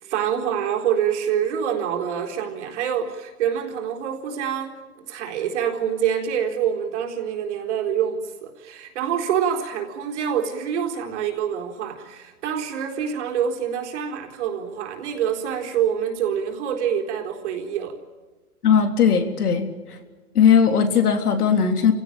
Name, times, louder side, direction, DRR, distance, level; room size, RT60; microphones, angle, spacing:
voice 1, 0.0-18.0, right 8 dB, 50° right, 3 dB, 4.1 m, -26 dB
voice 2, 18.6-20.0 20.4-21.9, left 7 dB, 80° left, 6 dB, 3.6 m, -18 dB
29.5 x 17.0 x 9.1 m, 1.3 s
hypercardioid pair, 155°, 45 cm